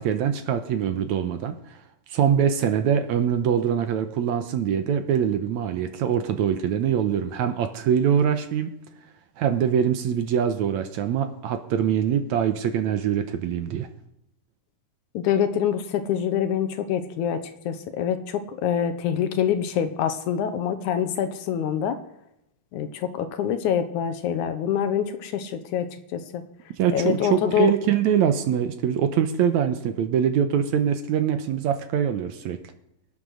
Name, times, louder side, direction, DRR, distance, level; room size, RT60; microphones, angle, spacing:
voice 1, 0.0-1.8 2.1-8.8 9.4-13.9 26.8-32.6, right 8 dB, 70° right, 9 dB, 2.0 m, -23 dB
voice 2, 15.1-22.0 22.7-26.4 26.9-27.7, left 9 dB, 75° left, 9 dB, 2.3 m, -25 dB
21.5 x 9.1 x 6.3 m, 0.84 s
omnidirectional pair, 3.7 m